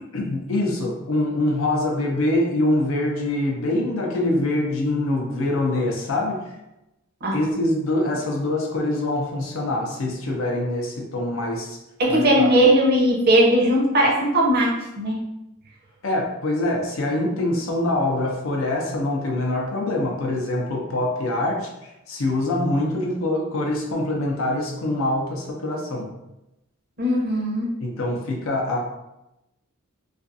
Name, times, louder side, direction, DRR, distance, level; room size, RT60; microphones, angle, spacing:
voice 1, 0.1-6.6 7.3-11.8 12.1-12.5 16.0-26.1 27.8-28.8, left 1 dB, 65° left, 0 dB, 0.5 m, -24 dB
voice 2, 12.0-15.2 27.0-27.7, right 1 dB, 50° right, -1 dB, 0.6 m, -18 dB
2.4 x 2.3 x 2.5 m, 0.91 s
head